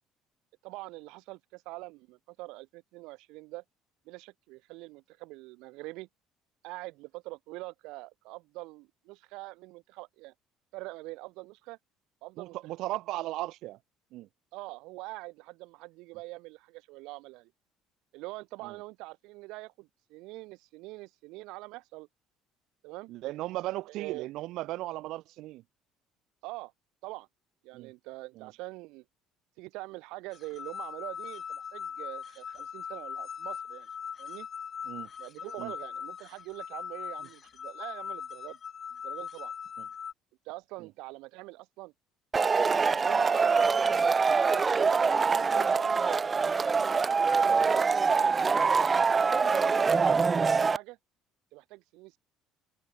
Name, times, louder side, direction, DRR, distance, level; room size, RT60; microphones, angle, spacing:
voice 1, 0.6-3.6 4.1-6.1 6.6-10.3 10.7-11.8 12.2-12.6 14.5-17.5 18.1-22.1 22.8-23.1 23.9-24.3 26.4-26.7 27.0-27.3 27.6-29.0 29.6-33.9 34.2-34.5 35.2-38.6 39.0-39.5 40.4-41.9 42.5-43.8 44.4-46.2 46.9-48.9 49.3-51.0 51.5-52.2, right 22 dB, 80° right, 1.8 m, -44 dB
voice 2, 12.4-13.8 14.1-14.3 18.6-18.7 23.1-25.6 27.7-27.9 28.4-28.5 34.9-35.1 35.6-35.7 40.8-40.9, right 17 dB, 60° right, 2.4 m, -36 dB
sound 1, 30.3-40.1, left 7 dB, 30° left, 3.2 m, -40 dB
Male speech man speaking / Shout / Clapping, 42.3-50.8, right 5 dB, 20° right, 0.4 m, -24 dB
cardioid pair, 165°, 0 cm